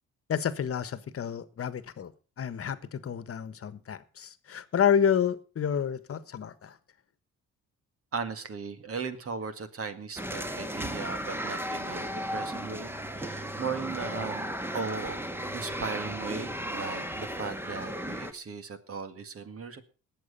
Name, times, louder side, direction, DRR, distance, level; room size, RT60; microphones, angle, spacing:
voice 1, 0.3-2.1 2.4-6.8, left 8 dB, 50° left, 1.3 m, -29 dB
voice 2, 8.1-14.5 14.7-15.2 15.5-19.8, right 5 dB, 50° right, 2.0 m, -37 dB
sound 1, 10.2-18.3, equal, 5° right, 1.5 m, -35 dB
19.0 x 7.8 x 5.5 m
cardioid pair, 90°, 30 cm